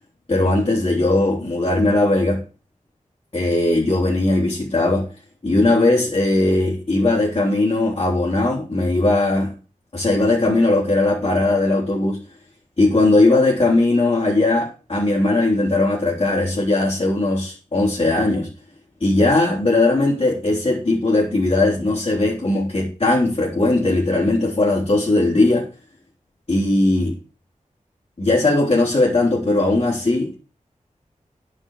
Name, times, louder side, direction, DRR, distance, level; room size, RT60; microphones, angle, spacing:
voice 1, 0.3-2.4 3.3-5.1 5.4-9.5 9.9-12.2 12.8-18.5 19.0-25.7 26.5-27.2 28.2-30.3, left 2 dB, 40° left, -4 dB, 3.5 m, -18 dB
9.9 x 6.1 x 7.3 m, 0.34 s
wide cardioid pair, 90°, 14 cm